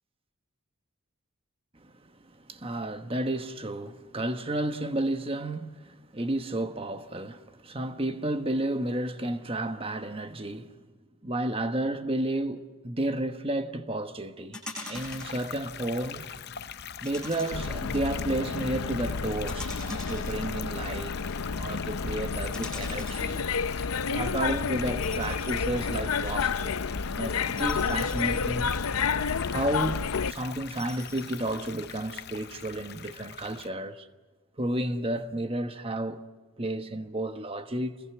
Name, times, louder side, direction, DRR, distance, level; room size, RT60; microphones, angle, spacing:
voice 1, 2.4-10.8 11.2-14.6 14.9-16.3 17.0-21.2 21.5-23.4 24.1-26.8 27.1-28.7 29.5-34.1 34.6-36.2 36.6-38.0, right 1 dB, 25° right, 1.3 m, -32 dB
sound 1, 14.5-15.4 17.0-18.0 19.5-20.9 22.5-23.2 25.0-25.8 26.2-26.3 27.6-29.2 30.8-31.9, left 2 dB, 5° left, 5.9 m, -43 dB
sound 2, 14.9-33.7, left 8 dB, 50° left, 0.7 m, -42 dB
sound 3, 17.5-30.3, left 5 dB, 80° left, 0.7 m, -30 dB
28.5 x 21.5 x 8.2 m
head